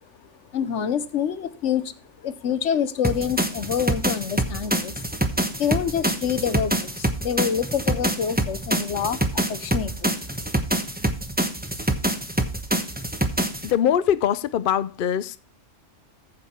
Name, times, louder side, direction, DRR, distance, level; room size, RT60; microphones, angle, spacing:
voice 1, 0.5-5.0 5.6-10.1, left 8 dB, 75° left, 1.1 m, -27 dB
sound 1, 3.0-13.7, right 1 dB, 10° right, 0.9 m, -26 dB
voice 2, 13.6-15.4, left 9 dB, 60° left, 0.6 m, -22 dB
15.0 x 5.2 x 4.2 m
omnidirectional pair, 1.2 m